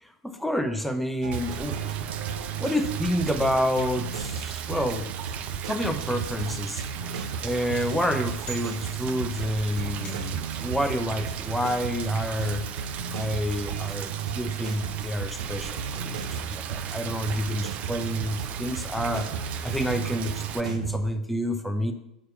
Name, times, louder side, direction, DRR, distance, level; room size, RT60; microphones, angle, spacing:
voice 1, 0.0-1.8 2.6-5.1 5.6-6.8 7.4-12.6 13.1-19.3 19.6-21.9, equal, 5° left, 7 dB, 0.9 m, -29 dB
sound 1, 1.2-21.0, right 6 dB, 70° right, 0.8 m, -34 dB
Rain, 1.3-20.6, right 9 dB, 40° right, 0.6 m, -38 dB
sound 2, 7.8-9.4 10.0-10.6, right 2 dB, 35° left, 2.9 m, -45 dB
8.0 x 5.1 x 7.1 m, 0.83 s
figure-of-eight pair, 80°, 4 cm